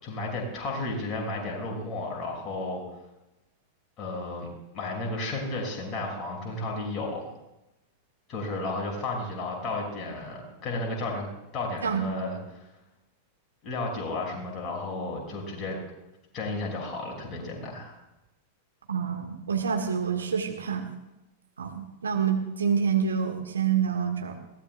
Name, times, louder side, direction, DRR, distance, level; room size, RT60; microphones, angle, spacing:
voice 1, 0.0-2.8 4.0-4.5 4.7-7.3 8.3-11.3 11.5-12.7 13.6-15.8 16.3-18.0, left 2 dB, 35° left, -1 dB, 5.5 m, -33 dB
voice 2, 18.9-20.8 21.6-24.4, right 7 dB, 70° right, 5 dB, 1.6 m, -27 dB
21.5 x 17.5 x 2.3 m, 0.97 s
figure-of-eight pair, 90°, 0 cm